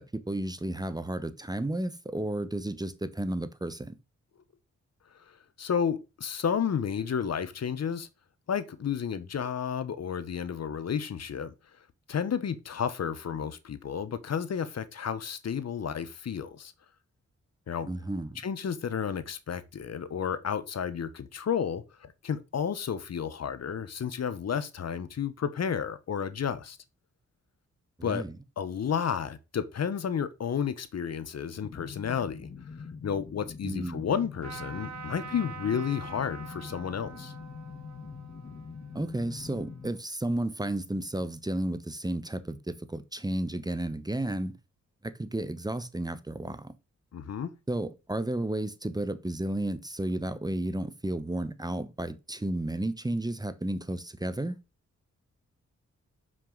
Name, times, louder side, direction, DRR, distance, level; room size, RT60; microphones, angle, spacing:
voice 1, 0.0-4.0 17.9-18.4 28.0-28.3 33.6-34.1 38.9-44.5 45.0-46.7 47.7-54.6, right 1 dB, 15° right, 1.0 m, -32 dB
voice 2, 5.3-8.1 8.5-11.5 12.1-16.7 17.7-17.9 18.4-26.8 28.0-28.2 28.6-32.5 33.0-37.3 47.1-47.5, left 7 dB, 60° left, 1.0 m, -32 dB
sound 1, 31.6-39.9, left 5 dB, 40° left, 1.1 m, -44 dB
Trumpet, 34.4-39.9, right 6 dB, 70° right, 1.6 m, -45 dB
6.8 x 6.2 x 3.9 m
cardioid pair, 60°, 29 cm